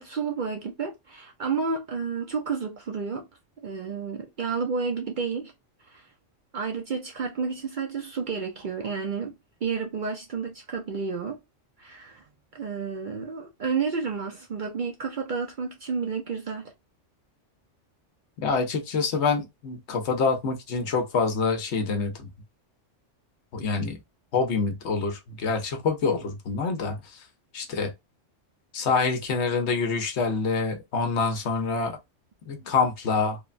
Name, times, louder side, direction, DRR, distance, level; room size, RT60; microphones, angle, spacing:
voice 1, 0.0-3.3 3.6-5.5 5.8-6.1 6.5-11.4 11.8-12.3 12.5-16.7, right 5 dB, 55° right, 0.6 m, -31 dB
voice 2, 18.4-22.1 23.5-24.0 24.3-27.0 27.5-27.9 28.7-32.0 32.5-33.4, left 4 dB, 65° left, 1.0 m, -26 dB
3.2 x 2.1 x 2.4 m
omnidirectional pair, 1.2 m